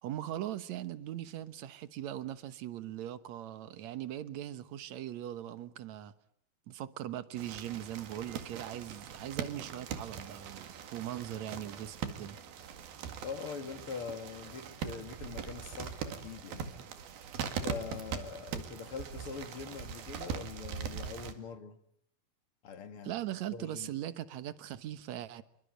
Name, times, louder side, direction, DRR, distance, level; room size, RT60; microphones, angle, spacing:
voice 1, 0.0-6.1 6.7-12.4 23.0-25.4, right 12 dB, 60° right, 2.2 m, -40 dB
sound 1, 7.4-21.3, right 7 dB, 90° right, 3.9 m, -41 dB
voice 2, 13.2-16.7 17.5-21.8 22.6-23.1 23.5-23.9, left 5 dB, 45° left, 2.4 m, -43 dB
27.0 x 24.0 x 8.1 m
omnidirectional pair, 4.2 m